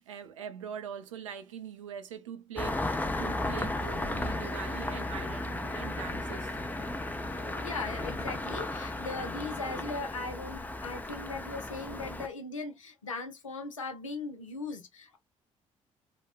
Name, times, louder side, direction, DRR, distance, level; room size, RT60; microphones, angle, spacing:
voice 1, 0.0-6.6, right 8 dB, 80° right, 0.5 m, -43 dB
Engine starting, 2.6-12.3, left 2 dB, 10° left, 0.5 m, -35 dB
sound 1, 3.8-9.5, left 5 dB, 65° left, 0.9 m, -51 dB
voice 2, 7.6-15.2, left 3 dB, 85° left, 0.5 m, -39 dB
4.0 x 2.1 x 2.4 m
figure-of-eight pair, 45°, 16 cm